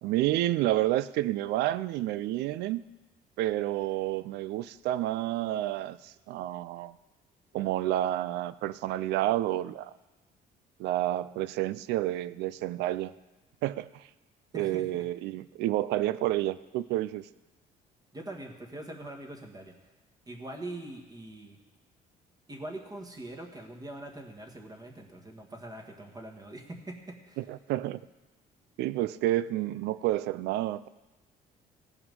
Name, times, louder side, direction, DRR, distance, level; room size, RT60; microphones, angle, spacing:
voice 1, 0.0-2.8 3.4-6.9 7.5-9.9 10.8-13.1 13.6-14.0 14.5-17.3 27.4-28.0 28.8-30.9, right 14 dB, 85° right, 17 dB, 0.4 m, -29 dB
voice 2, 14.5-15.0 18.1-19.7 20.3-21.6 22.5-27.4, right 1 dB, 20° right, 2 dB, 1.6 m, -43 dB
16.0 x 5.8 x 5.4 m, 1.2 s
cardioid pair, 110°, 17 cm